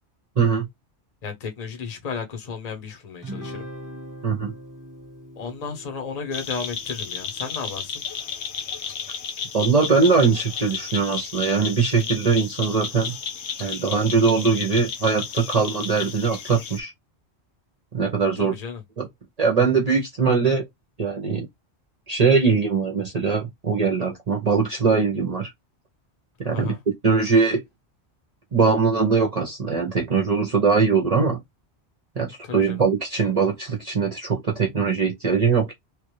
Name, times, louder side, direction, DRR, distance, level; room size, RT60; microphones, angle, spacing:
voice 1, 0.4-0.7 4.2-4.5 9.5-13.1 13.6-16.9 17.9-18.5 19.0-19.1 19.4-20.7 21.0-21.5 22.1-25.5 26.4-26.8 27.0-27.6 28.5-31.4 32.2-35.7, right 5 dB, 40° right, 0.8 m, -21 dB
voice 2, 1.2-3.7 5.3-8.0 18.4-18.8 26.4-26.8 32.4-32.8, left 5 dB, 40° left, 0.9 m, -33 dB
Guitar, 3.2-7.8, equal, 20° right, 1.1 m, -41 dB
sound 1, 6.3-16.8, left 6 dB, 80° left, 1.0 m, -33 dB
3.2 x 2.4 x 3.1 m
omnidirectional pair, 1.1 m